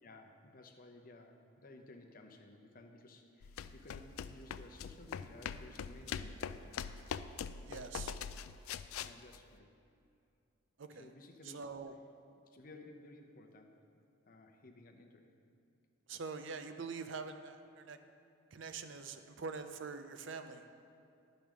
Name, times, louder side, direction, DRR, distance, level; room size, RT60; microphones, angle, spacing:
voice 1, 0.0-6.7 9.0-9.7 11.0-11.7 12.5-13.8 14.3-15.3, left 2 dB, 45° left, 4 dB, 0.7 m, -56 dB
sound 1, 3.4-9.4, left 7 dB, 90° left, 0.3 m, -43 dB
voice 2, 7.6-8.2 10.8-11.1 11.4-12.0 16.1-18.0 18.5-20.7, right 5 dB, 60° right, 8 dB, 0.5 m, -44 dB
11.0 x 5.2 x 6.1 m, 2.6 s
head